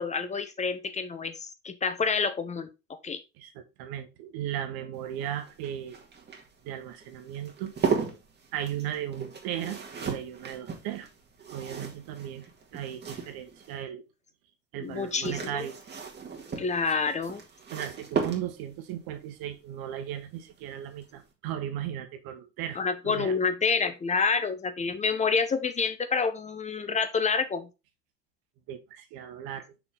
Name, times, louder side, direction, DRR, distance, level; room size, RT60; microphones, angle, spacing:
voice 1, 0.0-3.2 14.8-15.7 16.6-17.4 22.8-27.7, left 5 dB, 15° left, 10 dB, 0.7 m, -28 dB
voice 2, 3.4-6.0 6.6-7.7 8.5-11.1 11.5-12.4 12.7-14.0 14.7-15.8 17.7-23.4 28.7-29.7, right 10 dB, 45° right, 9 dB, 1.3 m, -36 dB
sound 1, 5.0-13.8 14.9-18.8 20.5-20.8 21.0-21.1, right 6 dB, 20° right, 1.8 m, -36 dB
5.9 x 4.7 x 3.7 m, 0.27 s
figure-of-eight pair, 80°, 49 cm